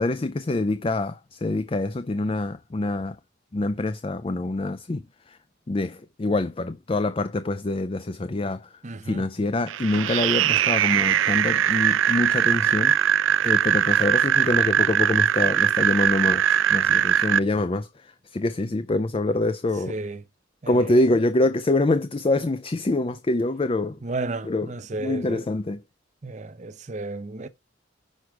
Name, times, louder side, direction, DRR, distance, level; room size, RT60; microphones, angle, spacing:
voice 1, 0.0-3.2 3.5-5.0 5.3-5.4 5.7-8.7 9.0-13.0 13.4-16.4 16.7-19.9 20.7-24.0 24.4-25.8, left 2 dB, 30° left, 0.4 m, -25 dB
voice 2, 8.8-9.3 19.9-20.2 20.6-21.0 24.0-25.5 26.2-27.5, right 2 dB, 40° right, 0.6 m, -33 dB
sound 1, 9.7-17.4, right 10 dB, 85° right, 0.4 m, -21 dB
6.5 x 4.6 x 5.9 m
head